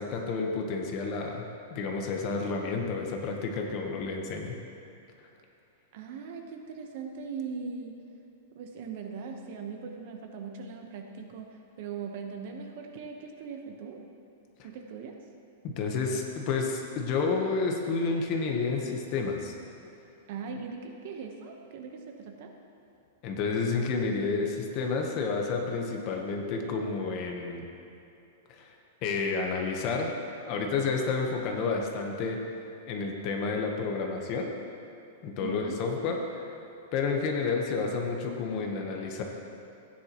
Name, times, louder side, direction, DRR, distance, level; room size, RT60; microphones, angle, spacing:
voice 1, 0.0-1.4 1.7-4.5 15.6-19.5 23.2-27.6 28.5-28.8 29.0-30.1 30.5-34.5 35.2-36.6 36.9-39.2, left 4 dB, 30° left, 2 dB, 1.0 m, -30 dB
voice 2, 5.9-8.0 8.5-14.0 14.6-15.1 20.3-22.5 35.4-35.8, right 5 dB, 40° right, 3 dB, 1.0 m, -40 dB
15.5 x 10.0 x 3.0 m, 2.8 s
supercardioid pair, 175°, 0 cm